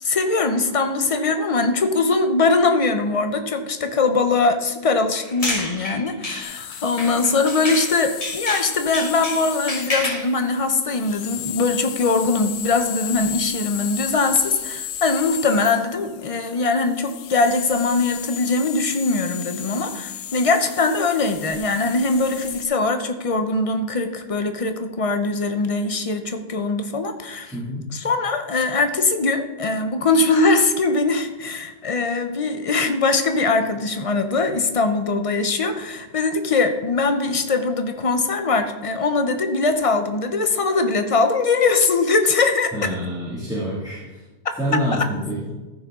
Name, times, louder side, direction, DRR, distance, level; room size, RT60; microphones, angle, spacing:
voice 1, 0.0-27.6 27.9-42.7 44.7-45.0, left 3 dB, 45° left, 7 dB, 0.4 m, -21 dB
sound 1, 5.1-7.9 8.2-10.3, left 1 dB, 20° left, 2.6 m, -29 dB
sound 2, 6.4-22.6, left 9 dB, 90° left, 1.3 m, -34 dB
voice 2, 27.5-27.8 42.7-44.2 44.6-45.5, equal, ahead, -7 dB, 2.1 m, -26 dB
14.5 x 6.3 x 3.7 m, 1.2 s
omnidirectional pair, 1.6 m